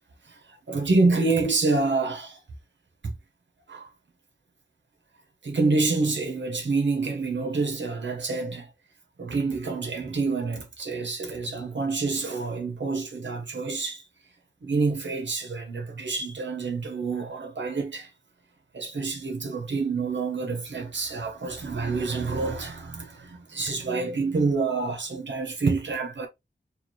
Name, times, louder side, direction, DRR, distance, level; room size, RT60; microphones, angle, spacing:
voice 1, 0.2-2.4 3.0-3.1 3.7-3.9 5.4-8.7 9.2-14.0 14.6-18.1 18.7-26.3, right 3 dB, 85° right, 1.2 m, -27 dB
4.7 x 2.5 x 3.0 m
wide cardioid pair, 50°, 19 cm